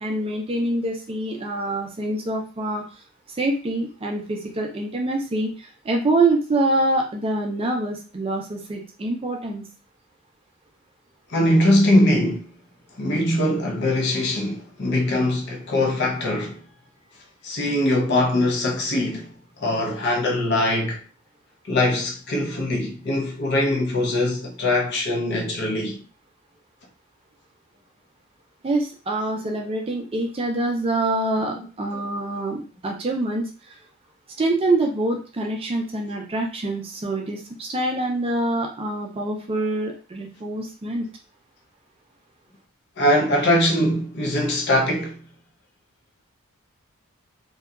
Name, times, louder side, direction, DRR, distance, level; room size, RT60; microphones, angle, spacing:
voice 1, 0.0-2.8 3.4-9.6 28.6-33.5 34.4-41.1, right 2 dB, 25° right, 0.4 m, -25 dB
voice 2, 11.3-12.5 13.0-16.6 17.4-21.0 21.7-26.0 31.5-31.6 31.9-32.1 43.0-45.2, left 1 dB, 50° left, 0.6 m, -22 dB
2.7 x 2.2 x 2.3 m
head